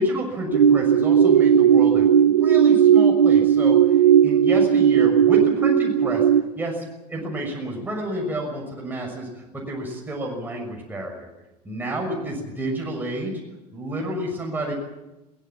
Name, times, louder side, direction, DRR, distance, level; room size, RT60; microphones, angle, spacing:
voice 1, 0.0-6.2 6.5-6.8 7.1-11.3 11.6-13.3 13.7-14.7, equal, 10° right, -1 dB, 6.5 m, -29 dB
sound 1, 0.5-6.4, right 9 dB, 75° right, 0.8 m, -16 dB
22.5 x 20.0 x 7.4 m, 0.98 s
figure-of-eight pair, 75°, 21 cm